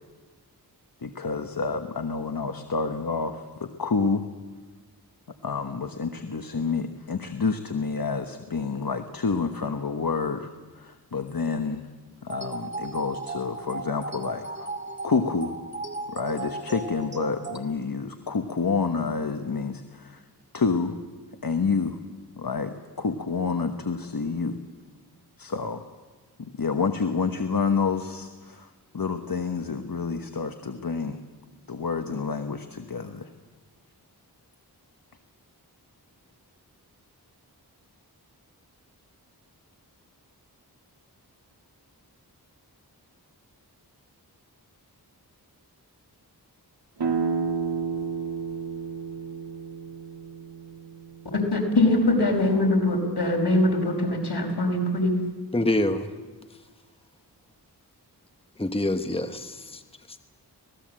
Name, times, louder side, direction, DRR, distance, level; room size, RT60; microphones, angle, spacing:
voice 1, 1.0-4.2 5.4-11.9 12.2-14.7 15.0-15.6 16.1-20.2 20.5-21.0 21.4-22.0 22.4-24.6 25.4-25.8 26.4-31.2 31.7-33.3, left 4 dB, 60° left, 6 dB, 1.3 m, -28 dB
sound 1, 12.3-17.6, right 3 dB, 25° right, 2.3 m, -36 dB
sound 2, 47.0-52.6, right 5 dB, 85° right, 2.5 m, -32 dB
voice 2, 51.5-55.2, left 1 dB, 80° left, 2 dB, 5.2 m, -22 dB
voice 3, 55.5-56.1 58.6-59.8, left 1 dB, 15° left, 7 dB, 1.2 m, -26 dB
26.0 x 19.0 x 7.6 m, 1.3 s
wide cardioid pair, 70°, 40 cm